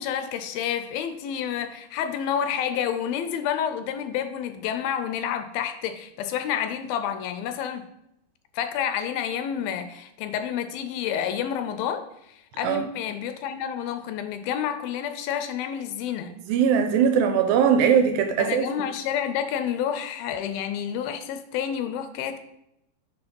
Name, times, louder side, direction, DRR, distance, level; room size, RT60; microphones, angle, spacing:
voice 1, 0.0-7.8 8.5-16.3 18.4-22.4, left 9 dB, 80° left, 8 dB, 2.3 m, -29 dB
voice 2, 16.5-18.6, right 7 dB, 80° right, 6 dB, 2.2 m, -20 dB
7.0 x 4.0 x 5.2 m, 0.83 s
omnidirectional pair, 4.4 m